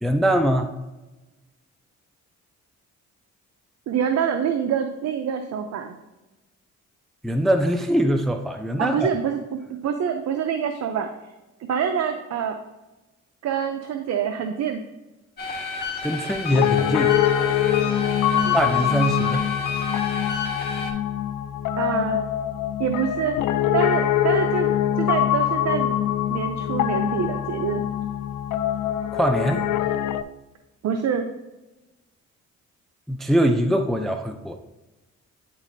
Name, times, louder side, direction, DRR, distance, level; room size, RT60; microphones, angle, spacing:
voice 1, 0.0-0.7 7.2-9.1 16.0-17.1 18.5-19.4 29.1-29.6 33.1-34.5, equal, ahead, 6 dB, 0.4 m, -22 dB
voice 2, 3.9-6.0 8.8-11.3 11.7-12.6 13.4-14.8 18.3-18.6 21.8-22.2 22.8-23.4 23.7-25.9 26.3-27.8 30.8-31.3, right 7 dB, 60° right, 6 dB, 0.6 m, -26 dB
sound 1, 15.4-20.9, left 3 dB, 35° left, 1.6 m, -31 dB
Piano, 16.5-30.2, left 11 dB, 75° left, 0.4 m, -24 dB
10.0 x 4.1 x 2.6 m, 1.1 s
cardioid pair, 90°, 30 cm